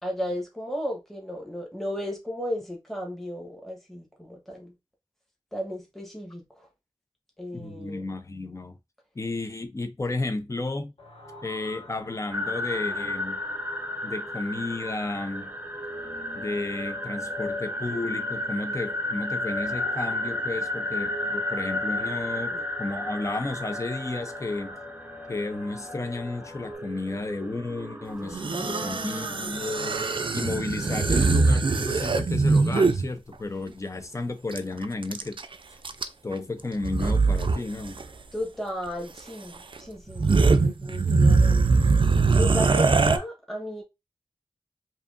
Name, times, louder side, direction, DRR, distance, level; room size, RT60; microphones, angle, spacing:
voice 1, 0.0-4.7 5.5-6.7 7.4-8.2 22.5-22.6 28.2-29.6 38.3-41.8 42.4-43.8, equal, ahead, 1.3 m, -35 dB
voice 2, 7.5-8.7 9.2-10.9 11.4-13.4 14.0-15.5 16.3-24.8 25.3-30.0 30.3-35.4 36.2-38.0, left 2 dB, 30° left, 0.6 m, -32 dB
sound 1, 11.0-26.7, left 4 dB, 85° left, 1.4 m, -43 dB
sound 2, 12.3-32.1, left 1 dB, 15° right, 0.6 m, -34 dB
sound 3, 28.3-33.1 34.5-34.6 34.8-35.5 35.8-36.3 36.8-37.6 37.8-38.1 39.2-39.3 39.7-39.8 40.1-43.2, right 4 dB, 60° right, 0.4 m, -22 dB
4.8 x 2.8 x 2.6 m
wide cardioid pair, 80°, 10 cm